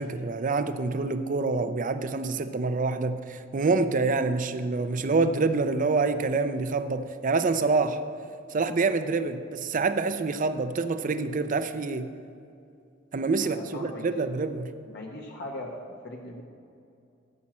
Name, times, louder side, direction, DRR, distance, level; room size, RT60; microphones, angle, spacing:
voice 1, 0.0-8.0 8.5-12.1 13.1-14.7, right 3 dB, 40° right, 10 dB, 0.5 m, -26 dB
voice 2, 13.4-14.1 14.9-15.8 16.0-16.4, left 1 dB, 55° left, 0 dB, 0.9 m, -39 dB
13.5 x 7.5 x 4.3 m, 2.5 s
head